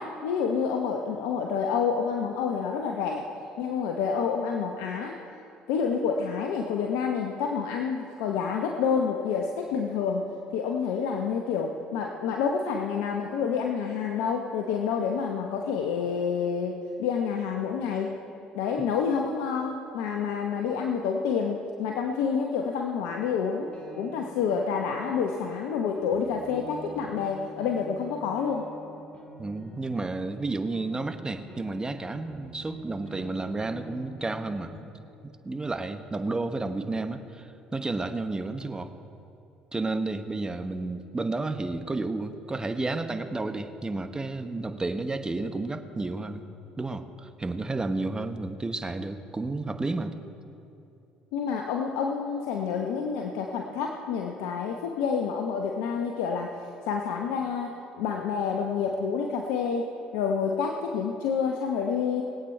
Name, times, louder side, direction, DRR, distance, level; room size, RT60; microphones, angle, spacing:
voice 1, 0.0-3.3 3.6-5.2 5.7-18.2 18.5-28.7 51.3-56.6 56.8-59.9 60.1-62.2, left 6 dB, 75° left, 2 dB, 0.8 m, -28 dB
sound 1, 23.6-34.8, right 1 dB, 25° left, 2.2 m, -46 dB
voice 2, 29.4-34.8 35.2-38.9 39.7-46.4 46.8-50.1, right 3 dB, 20° right, 8 dB, 1.1 m, -31 dB
20.5 x 8.5 x 4.5 m, 2.8 s
hypercardioid pair, 60°, 4 cm